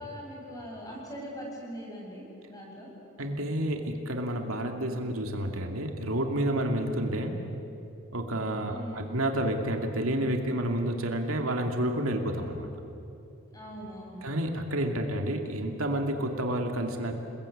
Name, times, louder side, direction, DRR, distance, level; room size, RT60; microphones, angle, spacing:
voice 1, 0.0-2.9 8.7-9.1 13.5-14.2, equal, 15° left, -2 dB, 7.8 m, -41 dB
voice 2, 3.2-7.5 8.1-12.7 14.2-17.1, right 1 dB, 75° right, 3 dB, 2.5 m, -30 dB
29.5 x 21.0 x 8.7 m, 2.8 s
head